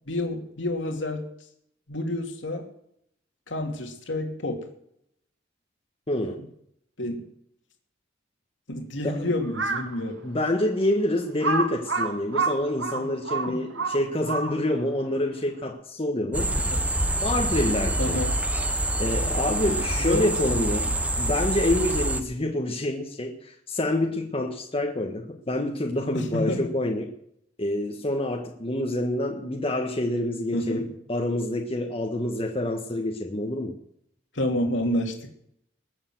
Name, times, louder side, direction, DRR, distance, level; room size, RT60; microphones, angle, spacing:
voice 1, 0.1-1.3 1.9-2.7 3.5-4.7 7.0-7.2 8.7-10.2 13.5-13.6 18.0-18.4 20.0-21.0 26.1-26.7 30.5-30.9 34.3-35.1, left 1 dB, 75° left, 3 dB, 2.8 m, -29 dB
voice 2, 6.1-6.4 9.0-9.3 10.2-16.6 17.2-18.2 19.0-20.9 21.2-27.1 27.6-33.7, left 1 dB, 30° left, 1 dB, 1.6 m, -27 dB
Crow, 9.4-9.9 10.5-10.6 11.4-14.8, right 4 dB, 85° right, 2.1 m, -28 dB
sound 1, 16.3-22.2, right 1 dB, 10° right, 1.2 m, -26 dB
20.5 x 7.1 x 7.9 m, 0.73 s
head